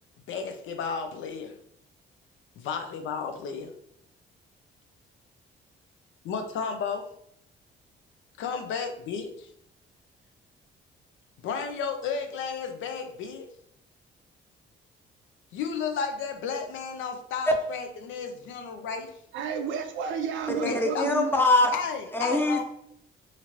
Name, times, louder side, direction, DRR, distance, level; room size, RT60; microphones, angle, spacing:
voice 1, 0.3-1.5 2.6-3.7 6.2-7.1 8.4-9.5 11.4-13.5 15.5-19.1 20.6-21.0 21.7-22.6, left 6 dB, 80° left, 6 dB, 0.5 m, -33 dB
voice 2, 19.3-21.3, right 6 dB, 75° right, 6 dB, 0.5 m, -31 dB
voice 3, 20.6-21.7 22.1-22.6, left 2 dB, 10° left, 2 dB, 0.6 m, -23 dB
2.9 x 2.5 x 3.0 m, 0.71 s
cardioid pair, 90°, 20 cm